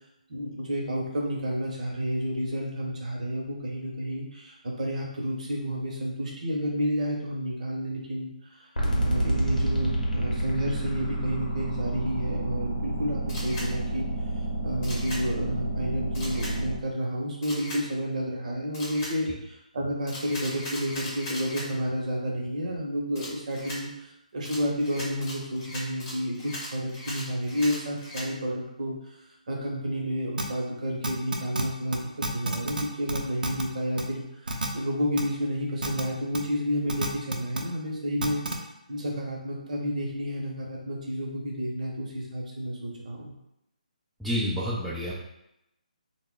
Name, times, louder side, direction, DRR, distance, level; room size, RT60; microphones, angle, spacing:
voice 1, 0.3-8.7 9.0-14.1 14.6-29.1 29.5-38.4 38.9-43.3, equal, 60° right, -1 dB, 0.8 m, -31 dB
sound 1, 8.8-16.8, right 1 dB, 85° left, 0.8 m, -29 dB
Camera, 13.3-13.7 14.8-15.2 16.1-16.5 17.4-17.8 18.7-19.1 20.1-21.7 23.1-23.8 24.4-28.3, left 1 dB, 25° left, 0.9 m, -38 dB
sound 2, 30.4-30.5 31.0-31.6 31.9-32.0 32.2-32.8 33.1-33.6 34.0-34.1 34.5-34.7 35.2-35.3 35.8-36.0 36.3-36.4 36.9-37.6 38.2-38.5, right 2 dB, 85° right, 0.5 m, -28 dB
voice 2, 44.2-45.1, equal, ahead, -10 dB, 0.4 m, -28 dB
2.1 x 2.1 x 3.7 m, 0.84 s
figure-of-eight pair, 145°, 4 cm